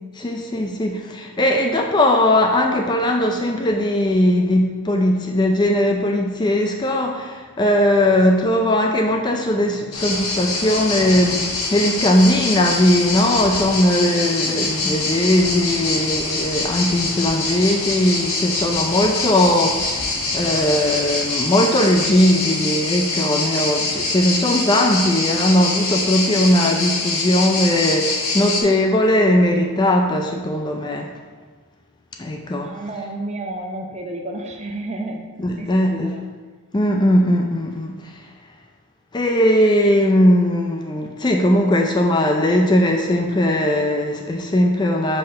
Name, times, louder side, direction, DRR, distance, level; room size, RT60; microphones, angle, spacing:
voice 1, 0.2-31.1 32.2-32.7 35.4-36.2 36.7-38.0 39.1-45.2, left 1 dB, 20° left, 2 dB, 0.4 m, -19 dB
sound 1, 9.9-28.6, left 3 dB, 65° left, 1.3 m, -24 dB
voice 2, 14.4-14.7 32.6-35.3 35.5-36.3, right 2 dB, 30° right, 3 dB, 0.6 m, -31 dB
5.3 x 4.3 x 5.5 m, 1.5 s
head